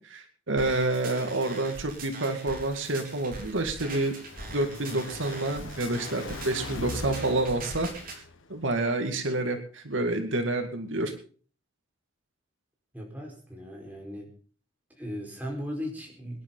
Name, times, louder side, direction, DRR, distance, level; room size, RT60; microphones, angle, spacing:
voice 1, 0.0-4.1 4.5-7.9 8.5-11.1, right 2 dB, 75° right, 5 dB, 2.2 m, -28 dB
sound 1, 0.6-8.2, right 2 dB, 45° right, 4.2 m, -42 dB
Car passing by, 3.3-8.6, left 2 dB, 80° left, 1.5 m, -41 dB
voice 2, 12.9-14.3 15.0-16.4, equal, 10° right, 0 dB, 4.5 m, -37 dB
24.0 x 10.5 x 3.9 m, 0.42 s
head